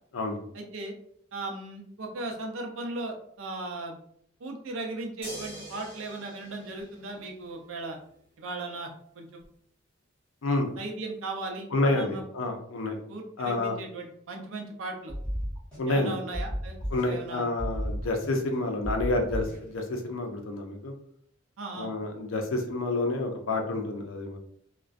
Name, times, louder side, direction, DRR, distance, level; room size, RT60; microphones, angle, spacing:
voice 1, 0.5-0.9 1.3-4.0 4.4-8.0 8.4-8.9 9.1-9.4 10.5-12.5 13.1-15.1 15.9-16.8 17.0-17.5 21.6-21.9, right 2 dB, 75° right, 1 dB, 0.5 m, -37 dB
sound 1, 5.2-7.7 9.4-9.5, equal, 25° left, 1.0 m, -44 dB
voice 2, 11.7-13.0 13.4-13.7 15.8-16.1 16.9-20.9 21.8-24.4, left 2 dB, 80° left, 3 dB, 0.5 m, -29 dB
sound 2, 15.1-16.0 16.3-17.3 17.6-18.5 18.8-19.8, equal, 5° left, 1.1 m, -33 dB
2.3 x 2.1 x 2.5 m, 0.66 s
head